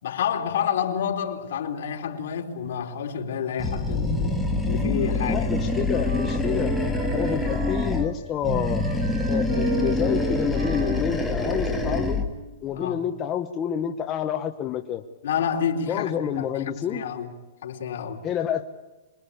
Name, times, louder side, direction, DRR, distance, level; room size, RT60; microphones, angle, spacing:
voice 1, 0.0-5.5 12.7-13.0 15.2-18.2, left 7 dB, 65° left, 3.7 m, -29 dB
Animal, 3.6-8.1 8.4-12.3, left 2 dB, ahead, 1.8 m, -25 dB
Wind instrument woodwind instrument, 4.4-8.2 8.5-12.6, right 7 dB, 70° right, 4.1 m, -36 dB
voice 2, 5.3-6.7 7.1-8.9 9.3-12.2 12.6-15.0 15.9-17.0 18.2-18.7, left 9 dB, 20° left, 1.0 m, -29 dB
26.5 x 22.0 x 8.5 m
supercardioid pair, 170°, 0 cm